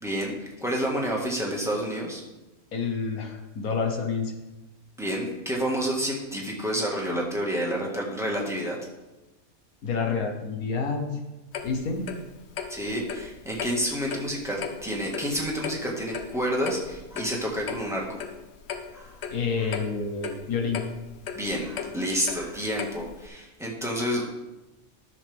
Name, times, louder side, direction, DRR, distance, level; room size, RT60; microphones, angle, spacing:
voice 1, 0.0-2.2 5.0-8.8 12.7-18.2 18.9-19.2 21.4-24.3, equal, ahead, -3 dB, 1.7 m, -29 dB
voice 2, 2.7-4.3 9.8-11.0 11.6-12.1 19.3-20.8, left 5 dB, 75° left, 3 dB, 1.7 m, -28 dB
Clock, 11.5-23.3, left 7 dB, 55° left, 0.9 m, -38 dB
13.0 x 6.5 x 3.6 m, 1.0 s
omnidirectional pair, 1.5 m